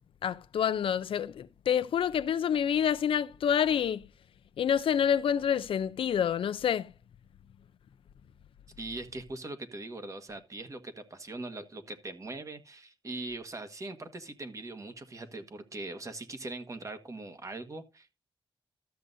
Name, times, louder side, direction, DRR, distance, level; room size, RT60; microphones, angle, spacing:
voice 1, 0.2-4.0 4.6-6.9, left 8 dB, 85° left, 0.5 m, -27 dB
voice 2, 8.8-18.1, right 2 dB, 35° right, 1.4 m, -41 dB
13.0 x 7.6 x 2.7 m
wide cardioid pair, 105°, 9 cm